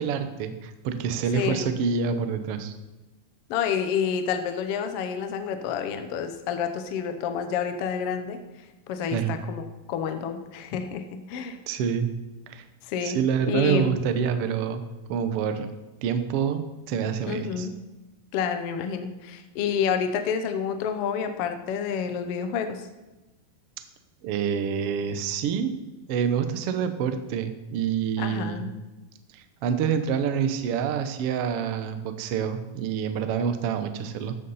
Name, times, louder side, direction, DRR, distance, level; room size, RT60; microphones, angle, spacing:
voice 1, 0.0-2.7 9.1-9.4 11.7-12.1 12.5-12.6 13.0-15.7 16.0-17.7 24.2-25.8 26.1-28.7 29.3-34.4, right 7 dB, 80° right, 8 dB, 1.3 m, -27 dB
voice 2, 1.3-1.7 3.5-8.4 8.9-9.6 9.9-11.6 12.8-13.2 13.5-13.9 17.3-17.7 18.3-22.9 28.2-28.7, left 7 dB, 85° left, 8 dB, 1.3 m, -29 dB
14.5 x 6.7 x 5.6 m, 1.1 s
omnidirectional pair, 4.0 m